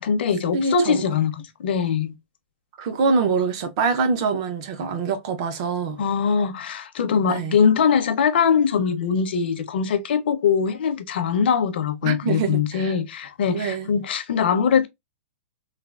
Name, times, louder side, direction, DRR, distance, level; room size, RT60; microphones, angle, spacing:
voice 1, 0.0-2.1 6.0-14.9, left 6 dB, 50° left, 0.5 m, -22 dB
voice 2, 0.5-1.0 2.8-6.0 7.3-7.6 12.0-12.9 13.5-13.9, right 4 dB, 25° right, 0.4 m, -24 dB
3.3 x 2.2 x 2.3 m
hypercardioid pair, 175°, 7 cm